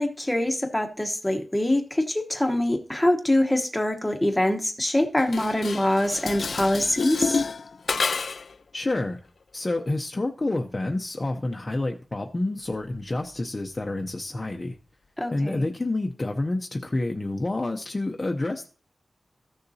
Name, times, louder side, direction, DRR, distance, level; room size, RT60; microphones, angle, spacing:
voice 1, 0.0-7.4 15.2-15.7, left 1 dB, 10° left, 4 dB, 1.0 m, -24 dB
Dishes pots and pans, 5.2-8.6, left 4 dB, 60° left, 0.4 m, -29 dB
voice 2, 8.7-9.2 9.5-14.7 15.3-18.7, left 2 dB, 30° left, 2 dB, 0.7 m, -28 dB
14.5 x 6.7 x 2.8 m, 0.39 s
wide cardioid pair, 135°, 0 cm